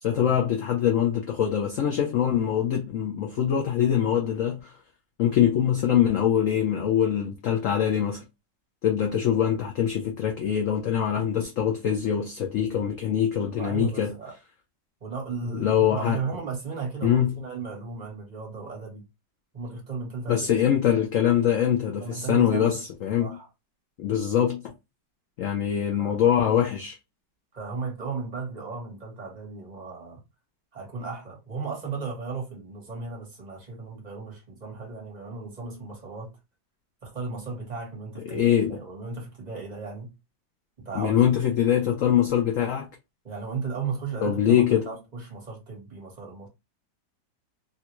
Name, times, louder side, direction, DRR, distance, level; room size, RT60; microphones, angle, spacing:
voice 1, 0.0-4.8 5.2-8.2 8.8-14.1 15.5-16.2 17.0-17.4 20.3-23.4 24.0-24.7 25.4-27.0 38.3-38.8 41.0-42.9 44.2-44.9, left 9 dB, 80° left, 0.7 m, -23 dB
voice 2, 13.5-14.3 15.0-19.0 19.5-20.5 22.0-22.8 23.2-23.5 26.0-26.2 27.5-30.2 30.7-36.3 37.0-40.1 40.8-41.2 43.2-46.5, right 4 dB, 25° right, 1.1 m, -35 dB
3.3 x 2.4 x 2.9 m
omnidirectional pair, 2.0 m